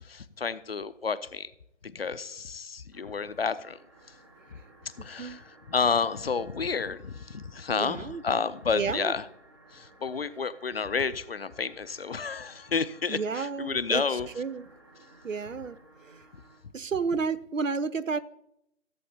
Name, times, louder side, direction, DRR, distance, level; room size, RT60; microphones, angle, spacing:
voice 1, 0.1-1.5 1.9-3.8 5.0-9.2 9.7-14.3, left 5 dB, 50° left, 14 dB, 0.5 m, -30 dB
sound 1, 2.9-16.6, right 2 dB, 20° right, 0.8 m, -57 dB
voice 2, 7.7-8.2 8.7-9.1 13.1-14.7 15.2-15.8 16.0-16.2 16.7-18.2, right 5 dB, 85° right, 16 dB, 0.7 m, -31 dB
15.0 x 7.7 x 2.8 m, 0.78 s
figure-of-eight pair, 150°, 38 cm